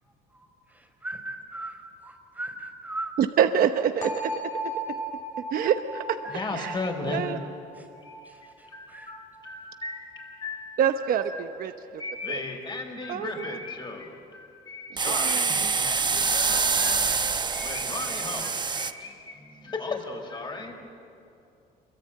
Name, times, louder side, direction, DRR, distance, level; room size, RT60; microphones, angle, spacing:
voice 1, 0.3-3.1 6.2-6.8 7.2-7.4 7.8-7.9 8.2-9.2, right 1 dB, 10° right, 3 dB, 4.0 m, -39 dB
voice 2, 3.2-4.7 5.5-6.2 6.5-7.4 10.8-11.7 12.3-12.4 13.1-13.6 14.9-15.9, right 8 dB, 60° right, 8 dB, 1.0 m, -27 dB
sound 1, 4.0-9.9, right 1 dB, 50° left, 4.4 m, -37 dB
voice 3, 6.3-7.2 8.7-10.8 11.3-11.4 12.0-20.7, left 3 dB, 25° left, 3 dB, 4.7 m, -36 dB
sound 2, 15.0-18.9, right 4 dB, 25° right, 1.0 m, -25 dB
27.0 x 23.5 x 8.8 m, 2.7 s
cardioid pair, 110°, 17 cm